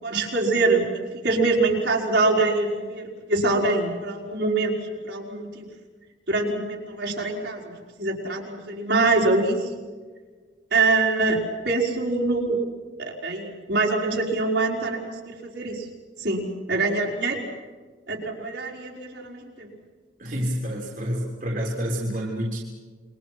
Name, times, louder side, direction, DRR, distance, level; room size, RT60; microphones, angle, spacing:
voice 1, 0.0-4.8 5.0-5.7 6.3-9.7 10.7-12.6 13.0-15.9 16.2-16.4 16.7-17.4 18.1-19.7, right 3 dB, 60° right, -1 dB, 5.0 m, -24 dB
voice 2, 20.2-22.6, equal, 45° right, -2 dB, 3.7 m, -28 dB
28.5 x 24.0 x 6.0 m, 1.4 s
head